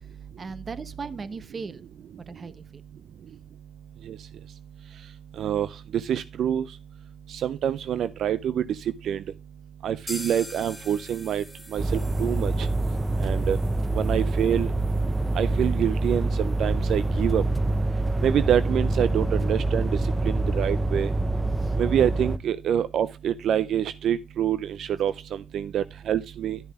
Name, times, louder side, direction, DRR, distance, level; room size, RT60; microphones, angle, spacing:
voice 1, 0.4-1.8 2.3-2.8 21.6-21.7, right 4 dB, 40° right, 0.9 m, -37 dB
voice 2, 5.4-6.6 7.3-8.8 9.0-9.2 9.8-11.4 11.7-12.7 13.2-13.6 13.9-14.7 15.3-17.4 18.2-19.9 20.2-21.1 21.8-26.6, right 9 dB, 70° right, 0.4 m, -26 dB
sound 1, 10.1-17.8 18.1-18.2 18.5-18.6 19.0-19.1, left 1 dB, ahead, 3.4 m, -46 dB
sound 2, 11.8-22.4, right 2 dB, 15° right, 0.6 m, -26 dB
11.5 x 7.0 x 3.5 m
cardioid pair, 90°, 0 cm